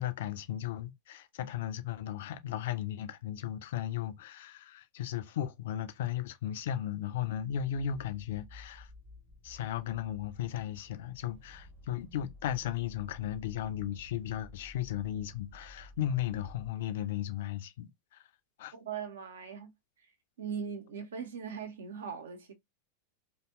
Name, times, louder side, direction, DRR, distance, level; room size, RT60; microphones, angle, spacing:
voice 1, 0.0-8.9 9.4-18.3 18.6-18.7, left 11 dB, 55° left, 0.3 m, -36 dB
sound 1, 7.1-16.7, left 1 dB, 10° right, 0.6 m, -54 dB
voice 2, 18.7-19.7 20.4-22.5, right 6 dB, 65° right, 0.5 m, -40 dB
2.7 x 2.0 x 2.3 m
figure-of-eight pair, 90°, 0 cm